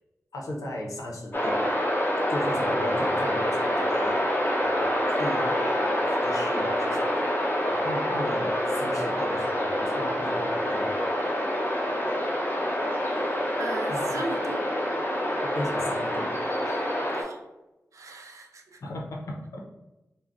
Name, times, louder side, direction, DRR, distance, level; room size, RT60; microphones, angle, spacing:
voice 1, 0.3-1.7 2.3-11.0 13.9-14.2 15.2-16.3 16.6-16.9 18.8-19.6, left 1 dB, 80° left, -1 dB, 0.6 m, -36 dB
sound 1, 1.3-17.2, equal, 35° left, 0.8 m, -27 dB
voice 2, 13.6-14.7 17.1-17.4 17.9-18.8, right 3 dB, 70° right, 3 dB, 0.4 m, -38 dB
2.3 x 2.1 x 3.5 m, 0.99 s
cardioid pair, 55°, 6 cm